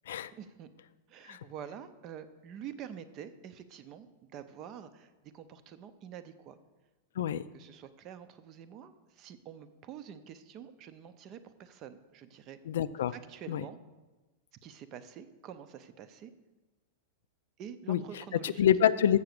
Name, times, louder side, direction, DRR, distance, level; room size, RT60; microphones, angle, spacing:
voice 1, 0.3-0.7 1.1-6.6 7.5-12.6 13.1-13.8 14.6-16.3 17.6-18.6, right 8 dB, 25° right, 12 dB, 0.4 m, -47 dB
voice 2, 12.7-13.1 13.5-13.6 17.9-18.0 18.4-19.2, left 10 dB, 80° left, 15 dB, 0.4 m, -26 dB
7.1 x 6.9 x 6.5 m, 1.2 s
supercardioid pair, 170°, 0 cm